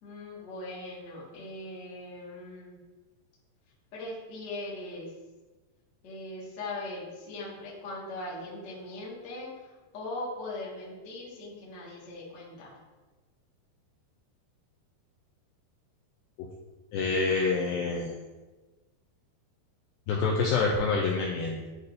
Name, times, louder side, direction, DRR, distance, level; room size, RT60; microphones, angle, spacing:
voice 1, 0.0-2.7 3.9-5.1 6.0-12.7, left 2 dB, 45° left, -7 dB, 1.4 m, -40 dB
voice 2, 16.9-18.1 20.1-21.7, left 4 dB, 85° left, -1 dB, 2.1 m, -27 dB
11.0 x 4.1 x 2.6 m, 1.2 s
omnidirectional pair, 4.7 m